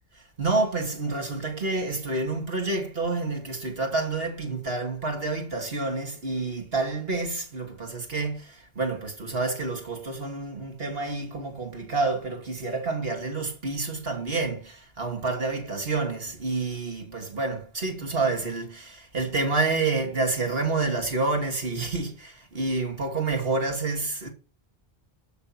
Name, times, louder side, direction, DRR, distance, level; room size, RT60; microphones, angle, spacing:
voice 1, 0.4-24.3, right 3 dB, 70° right, 3.1 m, -28 dB
12.5 x 6.7 x 6.1 m
omnidirectional pair, 1.0 m